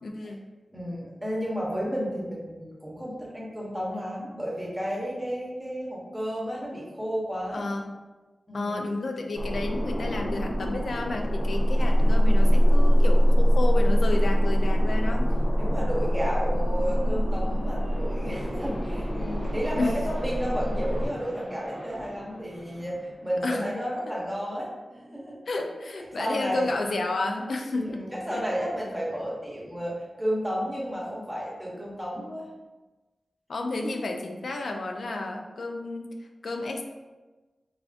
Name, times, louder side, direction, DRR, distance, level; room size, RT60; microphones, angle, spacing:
voice 1, 0.0-0.4 7.5-7.9 8.5-15.3 19.8-19.9 23.4-23.7 25.5-28.0 28.3-28.4 33.5-36.1 36.4-36.9, left 2 dB, 70° left, 3 dB, 0.3 m, -31 dB
voice 2, 0.7-7.6 8.5-8.8 15.0-15.2 15.5-25.4 26.2-26.7 27.7-32.5, equal, 10° right, -5 dB, 0.8 m, -32 dB
sound 1, 9.3-21.1, equal, 30° left, 0.7 m, -23 dB
sound 2, 16.5-23.7, right 1 dB, 40° right, 0.5 m, -50 dB
3.4 x 2.4 x 2.4 m, 1.2 s
wide cardioid pair, 105°, 0 cm